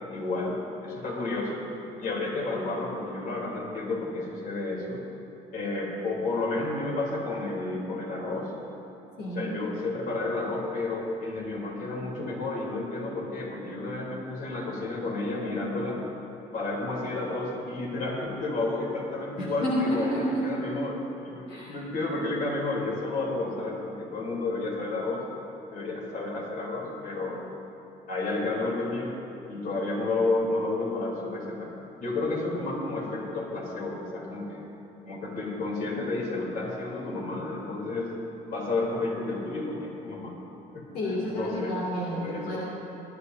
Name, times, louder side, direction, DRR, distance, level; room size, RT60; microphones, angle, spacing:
voice 1, 0.1-1.7 2.0-5.0 5.5-8.5 9.3-16.0 16.5-25.3 25.7-27.4 28.1-29.1 29.5-31.7 32.0-34.7 35.0-38.1 38.5-40.3 40.7-41.7 42.1-42.6, left 2 dB, 55° left, -3 dB, 3.4 m, -31 dB
voice 2, 9.2-9.5 19.4-20.6 21.5-21.7 40.9-42.6, equal, 75° left, -6 dB, 2.7 m, -30 dB
20.5 x 12.0 x 2.7 m, 2.9 s
cardioid pair, 110°, 17 cm